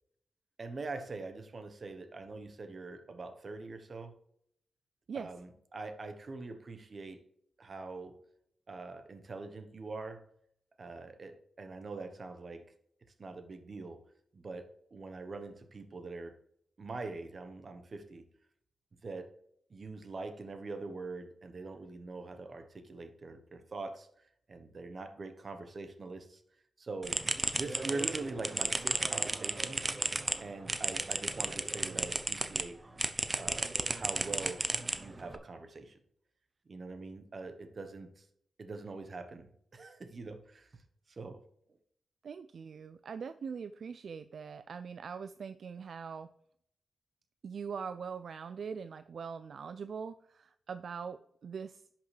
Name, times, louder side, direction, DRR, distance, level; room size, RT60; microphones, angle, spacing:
voice 1, 0.6-4.1 5.1-7.2 7.6-8.2 8.7-10.2 10.8-12.7 13.2-14.0 14.3-16.4 16.8-18.2 19.0-19.3 19.7-24.1 24.5-26.4 26.8-27.2 27.5-29.8 30.4-32.8 33.3-36.0 36.7-38.3 38.6-40.8 41.1-41.4, right 3 dB, 45° right, 1.1 m, -43 dB
sound 1, 27.0-32.6 33.0-35.4, right 2 dB, 25° right, 0.7 m, -34 dB
voice 2, 42.2-46.3 47.4-51.8, right 6 dB, 65° right, 0.3 m, -42 dB
11.0 x 5.8 x 3.3 m
cardioid pair, 90°, 0 cm